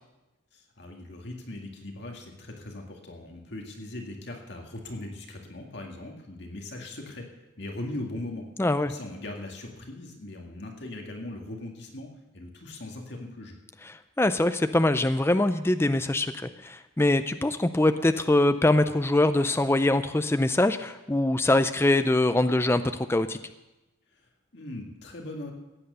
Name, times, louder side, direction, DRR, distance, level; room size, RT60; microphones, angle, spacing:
voice 1, 0.5-7.3 7.6-8.5 8.8-12.1 12.3-13.6 24.1-25.5, left 1 dB, 55° left, 1 dB, 2.1 m, -39 dB
voice 2, 8.6-8.9 14.2-16.3 16.6-23.4, left 2 dB, 10° left, 10 dB, 0.4 m, -23 dB
15.5 x 9.1 x 6.8 m, 1.0 s
head